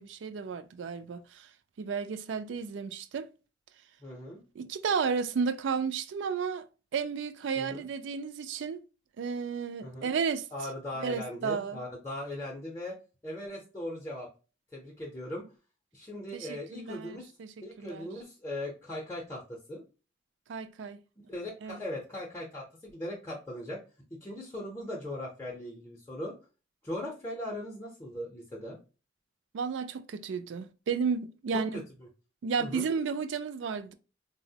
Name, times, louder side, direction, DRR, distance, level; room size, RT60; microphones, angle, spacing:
voice 1, 0.0-1.5 1.8-3.3 4.6-6.7 6.9-8.8 9.2-10.5 11.0-11.8 16.3-18.1 20.5-21.0 21.6-21.8 29.5-31.8 32.4-33.9, right 5 dB, 75° right, 0.3 m, -33 dB
voice 2, 4.0-4.4 7.6-7.9 9.8-10.1 10.5-13.0 13.2-14.3 14.7-15.4 15.9-17.3 17.6-19.8 21.3-23.8 24.1-26.3 26.8-28.8 31.5-32.1 32.6-32.9, left 1 dB, 10° left, 0.6 m, -39 dB
4.2 x 2.0 x 2.7 m
head